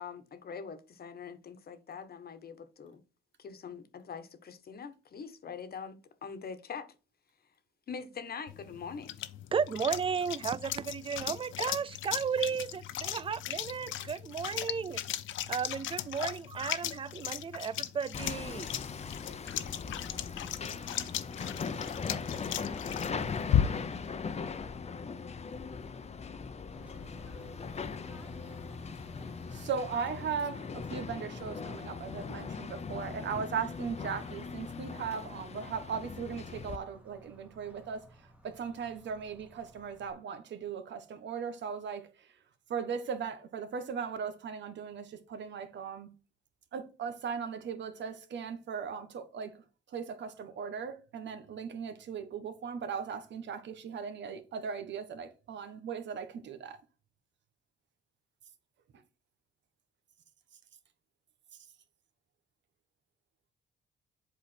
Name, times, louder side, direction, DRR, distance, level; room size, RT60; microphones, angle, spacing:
voice 1, 0.0-3.0 3.4-6.9 7.9-9.3, left 6 dB, 50° left, 1.3 m, -43 dB
sound 1, 8.5-24.0, left 11 dB, 75° left, 0.8 m, -36 dB
voice 2, 9.5-15.0 15.5-18.7, right 6 dB, 25° right, 0.4 m, -34 dB
Hammer, 18.1-36.8, left 5 dB, 35° left, 0.8 m, -40 dB
Bird / Train, 26.7-40.1, right 1 dB, 5° right, 1.6 m, -55 dB
voice 3, 29.5-38.0 38.4-42.3 42.7-46.1 46.7-49.5 49.9-56.8, right 6 dB, 65° right, 1.4 m, -38 dB
8.1 x 4.9 x 4.5 m
cardioid pair, 90°, 20 cm